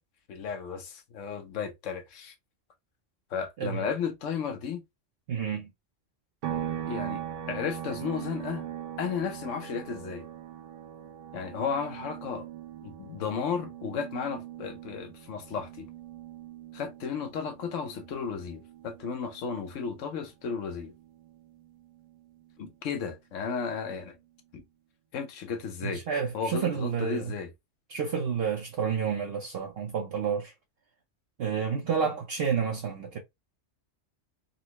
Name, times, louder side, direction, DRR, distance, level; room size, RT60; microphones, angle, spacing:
voice 1, 0.3-2.3 3.3-4.8 6.9-7.2 7.5-8.7 9.0-10.3 11.3-12.5 12.8-15.9 16.7-20.9 22.6-24.2 24.5-24.6 25.1-26.0 26.3-27.5, left 6 dB, 85° left, 1.1 m, -34 dB
voice 2, 5.3-5.7 25.8-27.3 27.9-30.5 31.4-33.2, right 7 dB, 60° right, 0.8 m, -30 dB
sound 1, 6.4-20.0 20.3-22.5, right 11 dB, 90° right, 1.0 m, -41 dB
4.0 x 2.1 x 2.9 m
omnidirectional pair, 1.2 m